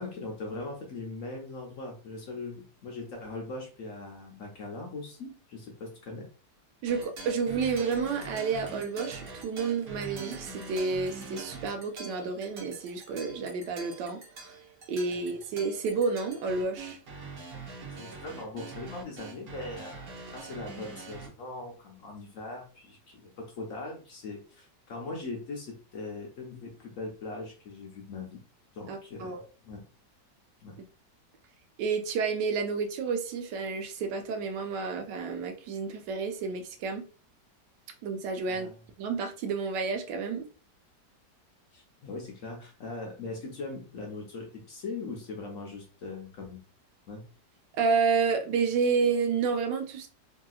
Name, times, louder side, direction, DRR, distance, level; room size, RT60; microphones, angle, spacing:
voice 1, 0.0-6.3 15.1-15.2 17.6-28.4 28.7-29.3 29.6-29.8 30.6-30.8 38.5-38.8 41.7-46.6 47.1-47.2, left 3 dB, 65° left, 0.9 m, -40 dB
voice 2, 6.8-14.6 14.9-17.0 28.9-29.4 31.8-37.0 38.0-38.7 39.0-40.5 47.7-50.1, right 5 dB, 85° right, 1.3 m, -30 dB
sound 1, 6.9-21.3, right 4 dB, 55° right, 1.1 m, -44 dB
3.1 x 2.7 x 2.3 m
omnidirectional pair, 1.9 m